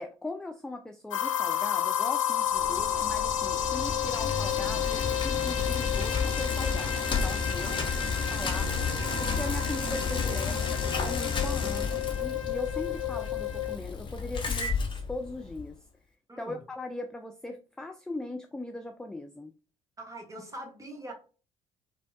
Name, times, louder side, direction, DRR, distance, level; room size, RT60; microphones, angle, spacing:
voice 1, 0.0-8.7 9.2-15.8 16.4-19.5, left 2 dB, 5° left, 0.3 m, -39 dB
sound 1, 1.1-13.8, left 10 dB, 75° left, 0.5 m, -31 dB
Bicycle, 2.6-15.7, left 5 dB, 30° left, 0.8 m, -32 dB
sound 2, 2.6-10.6, right 3 dB, 70° right, 1.1 m, -44 dB
voice 2, 7.6-7.9 16.3-16.6 20.0-21.1, right 1 dB, 20° right, 1.2 m, -43 dB
4.9 x 2.2 x 2.3 m
figure-of-eight pair, 50°, 16 cm